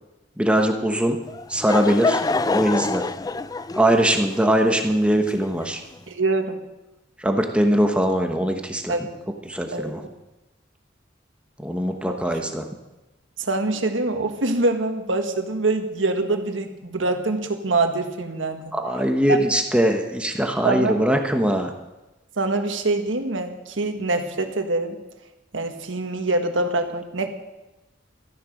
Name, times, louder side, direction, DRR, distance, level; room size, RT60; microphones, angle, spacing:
voice 1, 0.4-1.2 1.5-3.0 3.7-5.8 7.2-8.9 9.4-10.0 11.6-12.6 18.7-21.7, right 1 dB, 5° right, 4 dB, 1.0 m, -21 dB
Laughter / Crowd, 1.3-5.9, left 3 dB, 20° left, 0.3 m, -27 dB
voice 2, 6.1-6.6 8.9-9.1 9.7-10.0 12.1-12.2 13.4-18.6 19.3-19.4 20.6-21.0 22.4-25.0 25.5-27.3, right 2 dB, 85° right, 6 dB, 1.6 m, -24 dB
14.0 x 11.0 x 6.4 m, 1.0 s
head